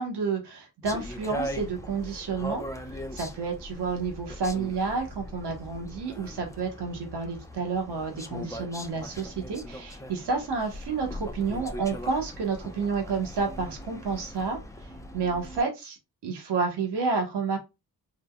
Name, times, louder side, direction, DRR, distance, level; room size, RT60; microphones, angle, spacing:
voice 1, 0.0-14.6 15.1-16.0 16.2-17.6, right 4 dB, 80° right, 3 dB, 1.2 m, -30 dB
sound 1, 0.8-15.6, equal, 10° left, 0.6 m, -40 dB
3.8 x 2.7 x 2.2 m, 0.24 s
cardioid pair, 50°, 40 cm